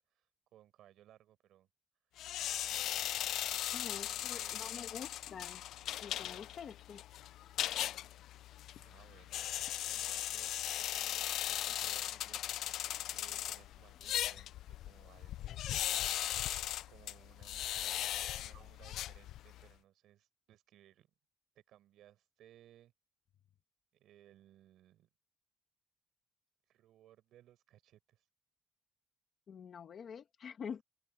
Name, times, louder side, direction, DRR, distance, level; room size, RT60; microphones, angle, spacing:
voice 1, 0.0-1.7 2.7-5.0 8.7-9.5 9.8-12.5 13.1-16.1 16.9-21.1 21.6-22.9 23.9-25.1 26.7-28.3, right 12 dB, 80° right, 5.3 m, -63 dB
sound 1, 2.2-19.7, left 12 dB, 80° left, 0.5 m, -38 dB
voice 2, 3.7-5.6 6.0-7.0 29.5-30.8, left 7 dB, 45° left, 1.9 m, -46 dB
open air
cardioid pair, 175°, 0 cm